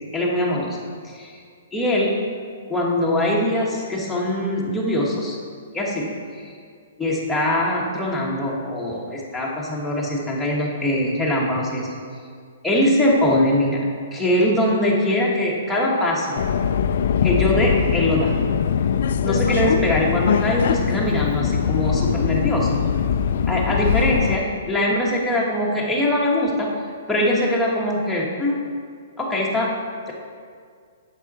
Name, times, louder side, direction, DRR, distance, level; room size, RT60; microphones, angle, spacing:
voice 1, 0.1-0.8 1.0-1.4 1.7-2.2 2.7-5.4 5.7-6.5 7.0-12.0 12.6-13.8 14.1-16.4 17.2-18.3 19.2-22.8 23.5-26.7 27.1-28.6 29.2-29.7, left 1 dB, 5° left, -5 dB, 1.4 m, -22 dB
Subway metro underground, 16.4-24.4, left 7 dB, 65° left, 0.3 m, -21 dB
8.1 x 6.4 x 4.2 m, 2.1 s
hypercardioid pair, 140°, 0 cm